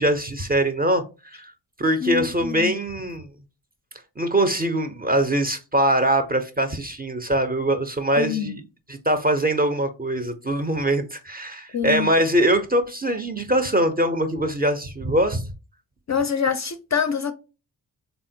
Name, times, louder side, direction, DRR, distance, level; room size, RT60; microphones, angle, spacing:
voice 1, 0.0-1.5 1.8-3.3 4.2-8.6 8.9-15.5, right 1 dB, 20° right, 0.4 m, -22 dB
voice 2, 2.0-2.7 8.2-8.5 11.7-12.1 16.1-17.3, left 7 dB, 40° left, 0.4 m, -25 dB
3.4 x 2.1 x 2.6 m
supercardioid pair, 45°, 48 cm